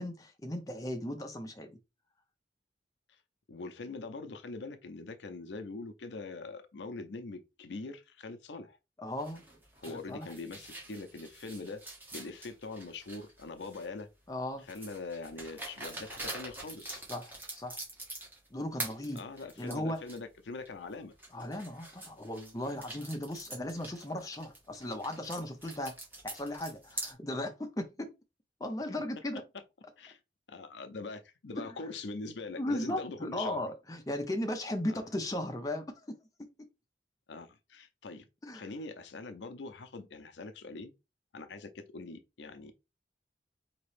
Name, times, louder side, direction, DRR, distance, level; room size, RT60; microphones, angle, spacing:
voice 1, 0.0-1.8 9.0-9.4 9.9-10.3 14.3-14.7 17.1-17.8 18.5-19.2 19.6-20.0 21.3-25.9 26.2-28.1 28.6-29.4 31.6-31.7 32.6-36.2 38.4-38.6, left 1 dB, 20° left, 0.6 m, -36 dB
voice 2, 3.5-8.8 9.8-11.8 12.1-14.1 14.7-17.0 19.1-21.2 30.0-30.2 30.5-33.6 34.9-35.0 37.3-38.2 38.5-40.9 41.3-42.7, left 3 dB, 85° left, 0.6 m, -43 dB
sound 1, 9.2-14.0 14.7-18.5 18.8-20.2 20.7-20.8 21.2-27.1, right 2 dB, 10° right, 1.1 m, -45 dB
4.1 x 2.9 x 3.2 m
head